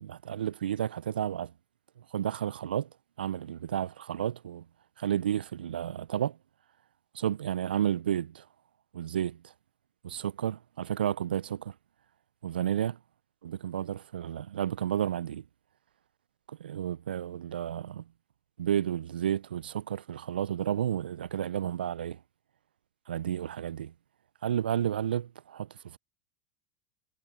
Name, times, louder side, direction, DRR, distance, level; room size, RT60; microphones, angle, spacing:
voice 1, 0.0-1.5 2.1-2.9 3.2-4.6 5.0-6.4 7.1-8.4 8.9-9.5 10.0-11.7 12.4-13.0 13.4-15.4 16.5-18.0 18.6-22.2 23.1-23.9 24.4-26.0, right 10 dB, 80° right, 0.6 m, -32 dB
hypercardioid pair, 85°, 5 cm